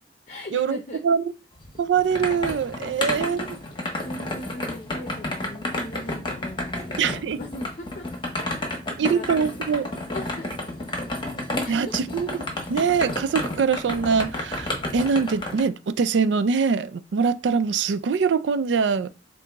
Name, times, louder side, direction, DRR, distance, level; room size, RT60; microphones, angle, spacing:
voice 1, 0.3-1.0 2.9-8.1 8.7-10.7 11.6-11.9, left 1 dB, 45° left, 0.7 m, -40 dB
sound 1, 1.6-15.6, left 1 dB, 30° left, 1.1 m, -31 dB
voice 2, 1.8-3.6 7.0-7.4 9.0-9.9 11.7-12.4 12.7-19.1, right 6 dB, 85° right, 0.4 m, -23 dB
4.6 x 2.6 x 3.5 m
head